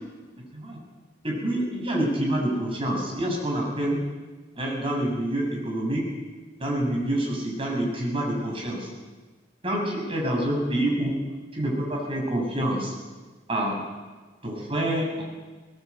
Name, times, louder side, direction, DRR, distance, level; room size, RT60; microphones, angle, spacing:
voice 1, 1.2-4.0 4.6-6.1 6.6-8.9 9.6-11.2 11.5-12.9 13.5-13.8 14.4-15.2, right 1 dB, 30° right, -1 dB, 7.0 m, -27 dB
20.5 x 20.5 x 8.3 m, 1.3 s
head